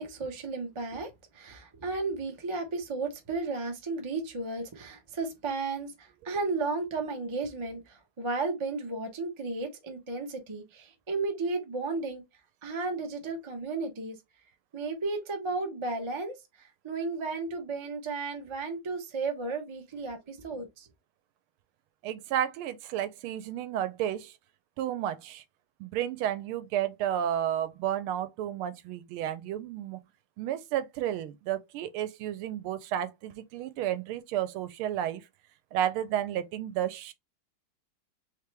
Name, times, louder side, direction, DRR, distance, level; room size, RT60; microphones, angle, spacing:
voice 1, 0.0-12.2 12.6-14.2 14.7-20.9, right 3 dB, 45° right, 0.3 m, -34 dB
voice 2, 22.0-24.3 24.8-25.4 25.8-30.0 30.4-35.2 35.7-37.1, right 11 dB, 85° right, 1.5 m, -32 dB
3.5 x 3.3 x 3.3 m
omnidirectional pair, 2.3 m